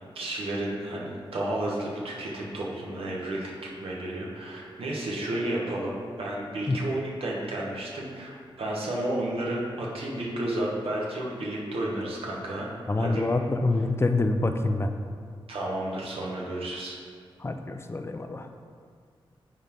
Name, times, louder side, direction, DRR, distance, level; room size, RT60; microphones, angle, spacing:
voice 1, 0.1-12.7 13.0-13.3 15.5-17.0, right 1 dB, 85° right, -3 dB, 1.4 m, -32 dB
voice 2, 12.9-14.9 17.4-18.5, left 2 dB, 25° left, 6 dB, 0.4 m, -26 dB
9.2 x 3.9 x 3.7 m, 2.1 s
wide cardioid pair, 80°, 9 cm